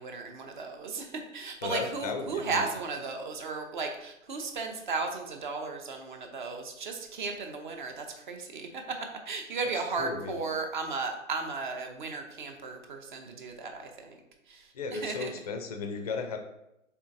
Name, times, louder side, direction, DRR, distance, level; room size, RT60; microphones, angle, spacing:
voice 1, 0.0-14.2 14.5-15.3, right 4 dB, 40° right, 4 dB, 0.5 m, -35 dB
voice 2, 1.6-2.6 10.0-10.4 14.7-16.4, left 4 dB, 30° left, 5 dB, 0.4 m, -35 dB
4.4 x 3.3 x 2.6 m, 0.86 s
figure-of-eight pair, 130°, 39 cm